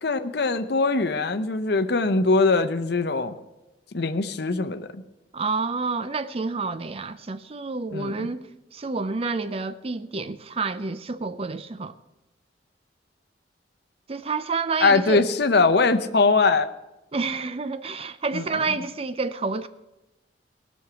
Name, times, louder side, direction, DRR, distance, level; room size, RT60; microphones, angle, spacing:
voice 1, 0.0-3.3 3.9-5.0 7.9-8.1 14.8-16.7 18.3-18.4, left 3 dB, 60° left, 0.7 m, -21 dB
voice 2, 5.3-11.9 14.1-15.3 17.1-19.7, right 4 dB, 30° right, 0.5 m, -29 dB
18.0 x 6.4 x 6.8 m
head